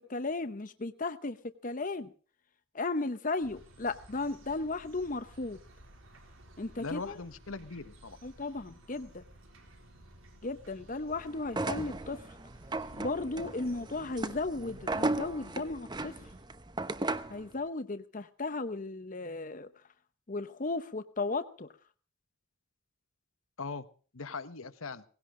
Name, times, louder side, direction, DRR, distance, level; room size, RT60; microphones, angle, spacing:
voice 1, 0.1-2.1 2.7-5.6 6.6-7.2 8.2-9.2 10.4-12.2 12.9-16.1 17.3-19.7 20.3-21.7, left 3 dB, 40° left, 11 dB, 0.8 m, -35 dB
sound 1, 3.4-16.4, right 1 dB, 80° right, 4.2 m, -56 dB
voice 2, 6.8-8.2 23.6-23.9 24.1-25.0, left 4 dB, 90° left, 11 dB, 1.3 m, -40 dB
sound 2, 11.4-17.4, right 2 dB, 20° right, 0.9 m, -36 dB
18.5 x 16.5 x 3.8 m, 0.42 s
head